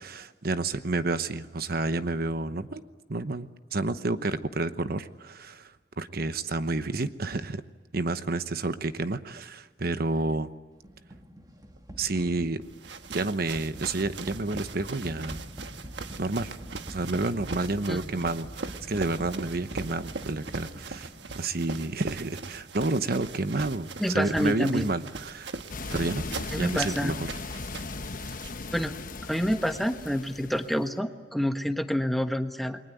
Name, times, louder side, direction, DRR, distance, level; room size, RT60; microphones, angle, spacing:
voice 1, 0.0-2.8 3.1-5.7 6.0-7.6 7.9-10.5 12.0-12.6 13.1-15.4 16.1-16.5 16.9-21.1 21.3-25.5 25.9-26.3 26.5-27.3, right 2 dB, 60° right, 11 dB, 1.0 m, -30 dB
sound 1, 10.8-21.7, equal, 20° right, 2.4 m, -45 dB
sound 2, 12.6-28.6, right 4 dB, 80° right, 1.3 m, -40 dB
voice 2, 24.0-24.9 26.5-27.1 28.7-28.9 29.3-32.8, equal, ahead, 7 dB, 1.2 m, -28 dB
sound 3, 25.7-31.0, left 3 dB, 50° left, 0.9 m, -38 dB
29.5 x 22.0 x 9.2 m, 1.4 s
head